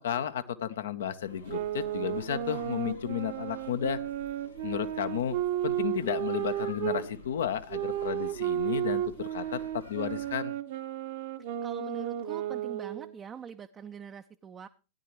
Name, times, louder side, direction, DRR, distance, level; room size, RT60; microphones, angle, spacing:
voice 1, 0.0-4.0 4.6-5.4 5.6-10.6, left 9 dB, 60° left, 11 dB, 0.9 m, -33 dB
sound 1, 1.2-10.3, left 3 dB, 85° left, 2.9 m, -50 dB
sound 2, 1.5-7.1 7.7-13.2, right 12 dB, 50° right, 1.0 m, -33 dB
voice 2, 11.6-14.7, right 7 dB, 25° right, 7 dB, 0.6 m, -43 dB
16.0 x 10.5 x 3.1 m, 0.32 s
figure-of-eight pair, 90°, 0 cm